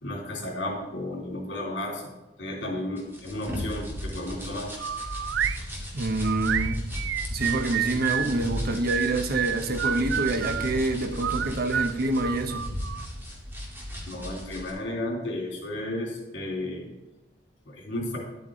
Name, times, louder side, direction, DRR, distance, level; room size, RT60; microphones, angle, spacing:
voice 1, 0.0-2.0 2.4-4.7 14.1-16.8 17.7-18.2, left 1 dB, 70° left, -1 dB, 3.1 m, -33 dB
sound 1, 3.0-14.7, left 1 dB, 10° right, 2.1 m, -36 dB
sound 2, 4.8-5.6 6.2-8.3 8.9-10.7 11.2-13.1, right 10 dB, 80° right, 0.4 m, -29 dB
voice 2, 5.9-6.8 7.3-12.7, right 2 dB, 55° right, 8 dB, 0.8 m, -27 dB
10.5 x 8.4 x 3.8 m, 1.1 s
head